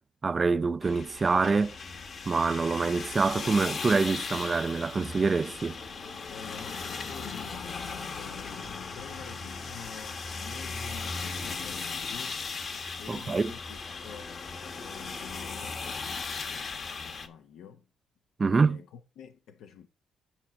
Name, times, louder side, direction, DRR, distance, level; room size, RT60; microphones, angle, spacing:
voice 1, 0.2-1.8 2.3-5.8 13.1-13.5 18.4-18.8, right 4 dB, 30° right, 0.4 m, -26 dB
sound 1, 0.8-17.3, left 4 dB, 50° left, 1.2 m, -37 dB
voice 2, 6.3-7.8 8.1-12.4 13.0-14.3 14.7-17.9 18.4-19.9, left 8 dB, 80° left, 0.6 m, -47 dB
9.9 x 4.3 x 5.1 m
cardioid pair, 90°, 0 cm